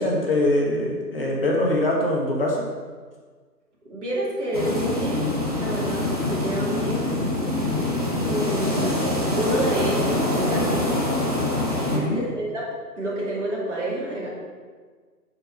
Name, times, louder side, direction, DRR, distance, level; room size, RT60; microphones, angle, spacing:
voice 1, 0.0-2.6 11.9-12.2, left 1 dB, 35° left, -2 dB, 1.1 m, -23 dB
voice 2, 3.9-7.0 8.3-9.0 9.4-11.1 11.9-12.7 13.0-14.3, right 1 dB, 45° right, -5 dB, 2.4 m, -28 dB
sound 1, 4.5-12.0, left 1 dB, 25° right, 0.7 m, -24 dB
7.7 x 4.6 x 5.3 m, 1.5 s
figure-of-eight pair, 145°, 49 cm